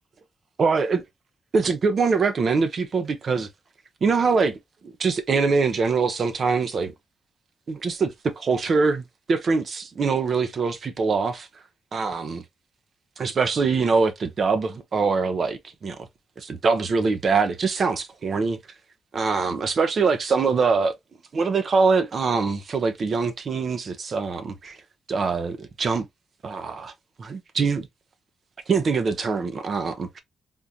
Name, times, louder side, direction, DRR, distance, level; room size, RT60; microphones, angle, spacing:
voice 1, 0.6-1.0 1.5-3.5 4.0-4.6 4.8-6.9 7.7-9.0 9.3-11.5 11.9-12.4 13.2-16.0 16.4-18.6 19.1-20.9 21.3-24.8 25.1-26.1 26.4-26.9 27.2-27.9 28.7-30.2, right 4 dB, 50° right, 0.7 m, -23 dB
3.6 x 2.5 x 2.7 m
cardioid pair, 105°, 0 cm